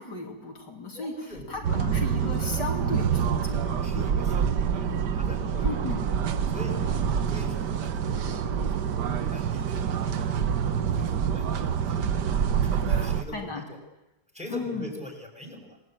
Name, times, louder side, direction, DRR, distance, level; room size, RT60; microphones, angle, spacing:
voice 1, 0.0-1.1 1.5-4.2 5.6-6.1 12.9-13.7 14.5-14.9, left 3 dB, 60° left, 2 dB, 3.5 m, -35 dB
voice 2, 0.9-1.4 3.8-6.0 6.5-12.1 12.6-13.8 14.3-15.8, left 1 dB, 5° right, 4 dB, 5.7 m, -42 dB
sound 1, 1.3-8.5, left 2 dB, 30° left, 3.4 m, -46 dB
sound 2, 1.6-13.2, right 7 dB, 60° right, 1.7 m, -26 dB
27.5 x 20.0 x 9.0 m, 0.93 s
omnidirectional pair, 2.1 m